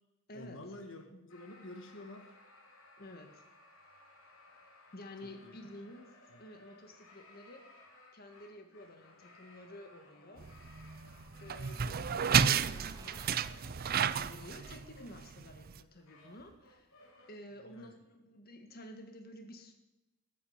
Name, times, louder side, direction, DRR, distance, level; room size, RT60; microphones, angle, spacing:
voice 1, 0.3-2.3 5.2-5.5 6.3-6.4 17.6-17.9, left 1 dB, 65° left, 5 dB, 1.6 m, -49 dB
sound 1, 1.3-12.5 13.1-15.1 15.8-17.4, left 2 dB, 85° left, 3.0 m, -60 dB
voice 2, 3.0-3.4 4.9-7.9 8.1-10.5 11.4-16.9 17.3-19.7, left 1 dB, 50° left, 5 dB, 1.7 m, -51 dB
sound 2, 10.4-15.8, right 7 dB, 45° right, 0.5 m, -32 dB
sound 3, 12.7-13.8 14.2-14.3 15.8-16.6 17.0-17.1, right 2 dB, 20° right, 1.8 m, -56 dB
13.5 x 8.5 x 8.0 m, 0.98 s
head